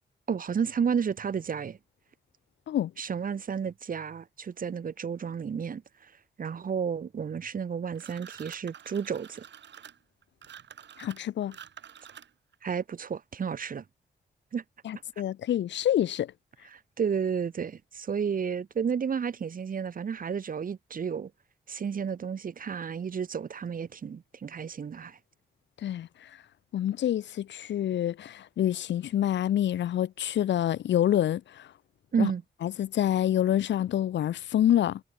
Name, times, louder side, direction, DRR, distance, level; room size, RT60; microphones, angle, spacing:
voice 1, 0.3-1.8 3.0-5.8 6.4-9.4 12.6-13.8 14.5-14.6 16.7-21.3 21.7-25.2 32.1-32.4, right 7 dB, 50° right, 0.9 m, -31 dB
sound 1, 7.9-12.5, right 9 dB, 75° right, 2.3 m, -48 dB
voice 2, 11.0-11.5 14.8-16.3 25.8-26.1 26.7-31.7 32.2-32.3 32.6-35.0, left 11 dB, 90° left, 1.0 m, -27 dB
cardioid pair, 65°, 18 cm